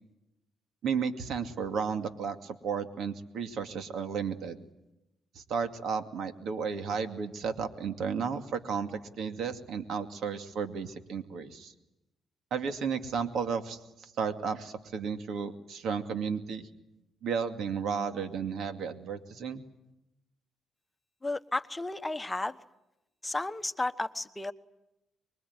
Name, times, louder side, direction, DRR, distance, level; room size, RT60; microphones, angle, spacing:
voice 1, 0.8-4.6 5.3-11.7 12.5-16.7 17.2-19.6, right 6 dB, 70° right, 7 dB, 2.4 m, -33 dB
voice 2, 21.2-22.6 23.2-24.5, left 2 dB, 15° left, 10 dB, 1.2 m, -33 dB
25.0 x 22.5 x 9.7 m, 0.91 s
cardioid pair, 90°, 0 cm